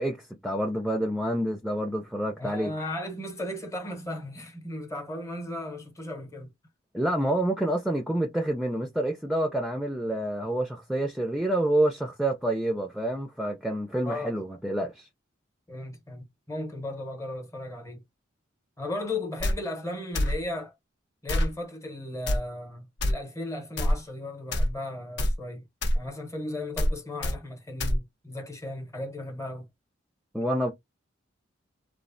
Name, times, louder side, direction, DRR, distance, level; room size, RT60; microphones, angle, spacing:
voice 1, 0.0-2.7 6.9-15.1 30.3-30.7, right 1 dB, ahead, 0.3 m, -28 dB
voice 2, 2.4-6.5 14.0-14.4 15.7-18.0 18.8-20.7 21.2-25.6 25.9-29.7, left 1 dB, 15° left, 0.8 m, -36 dB
sound 1, 19.4-19.6 20.1-20.4 21.3-21.5 22.3-22.4 23.0-23.1 23.8-24.0 24.5-24.7 25.2-25.4 25.8-26.0 26.8-26.9 27.2-27.4 27.8-28.0, left 1 dB, 55° left, 0.6 m, -24 dB
3.0 x 2.0 x 2.5 m
head